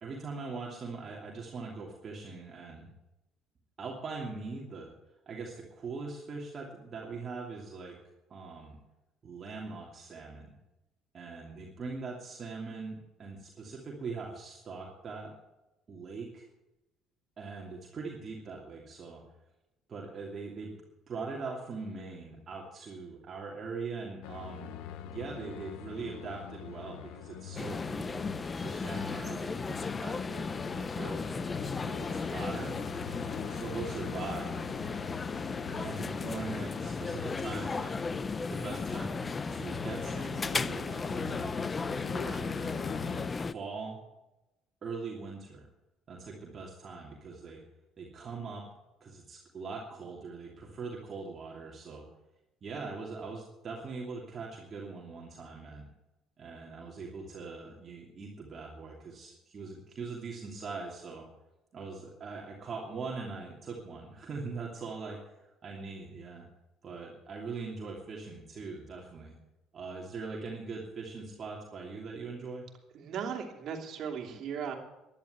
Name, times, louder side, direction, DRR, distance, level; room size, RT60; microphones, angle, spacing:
voice 1, 0.0-2.9 3.8-4.9 5.3-8.0 8.3-8.8 9.2-10.6 11.1-15.3 15.9-16.5 17.4-19.2 19.9-20.7 21.1-24.8 25.0-28.1 28.5-31.2 31.9-32.8 33.5-34.5 35.7-38.1 38.5-39.2 39.5-41.5 42.1-42.7 43.3-44.0 44.8-45.7 46.1-47.6 48.0-48.7 49.0-52.1 52.6-55.9 56.4-61.3 61.7-66.5 66.8-69.3 69.7-72.6, right 4 dB, 40° right, -2 dB, 2.8 m, -41 dB
sound 1, 24.2-43.3, left 10 dB, 85° left, 1.0 m, -45 dB
sound 2, 27.6-43.5, left 4 dB, 25° left, 0.6 m, -35 dB
voice 2, 72.9-74.7, right 7 dB, 60° right, 3 dB, 2.9 m, -37 dB
12.0 x 11.0 x 8.1 m, 0.97 s
cardioid pair, 100°, 0 cm